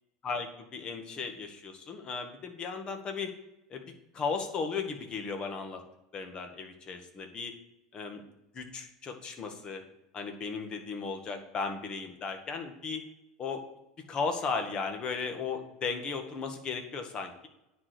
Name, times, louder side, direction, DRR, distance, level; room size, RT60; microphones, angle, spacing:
voice 1, 0.2-3.3 3.7-3.9 4.1-5.8 6.1-7.5 7.9-8.2 8.5-9.8 10.1-13.0 13.4-13.6 14.1-17.5, left 5 dB, 35° left, 5 dB, 1.9 m, -36 dB
9.7 x 4.9 x 8.0 m, 0.91 s
hypercardioid pair, 90°, 3 cm